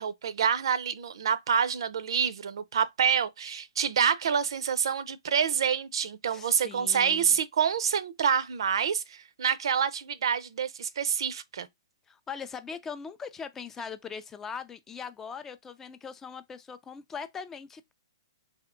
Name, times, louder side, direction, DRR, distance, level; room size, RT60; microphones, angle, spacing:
voice 1, 0.0-11.7, right 7 dB, 70° right, 0.5 m, -27 dB
voice 2, 6.3-7.4 12.1-17.9, left 6 dB, 15° left, 0.3 m, -40 dB
3.5 x 2.7 x 3.6 m
hypercardioid pair, 145°, 3 cm